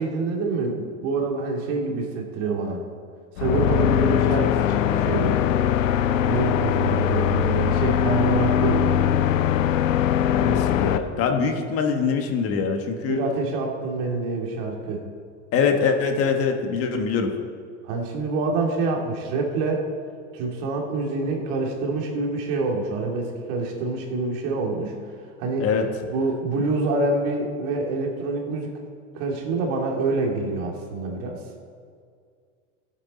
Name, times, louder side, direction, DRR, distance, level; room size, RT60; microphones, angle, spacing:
voice 1, 0.0-2.8 3.4-5.4 6.3-9.0 13.1-15.0 17.8-19.8 20.3-24.9 25.4-25.7 26.1-28.7 29.1-31.4, right 3 dB, 55° right, 0 dB, 2.4 m, -26 dB
sound 1, 3.4-11.0, left 9 dB, 85° left, 0.8 m, -21 dB
voice 2, 10.3-13.2 15.5-17.3 25.6-25.8, left 5 dB, 40° left, 4 dB, 1.3 m, -23 dB
16.5 x 8.1 x 4.2 m, 2.2 s
supercardioid pair, 135°, 38 cm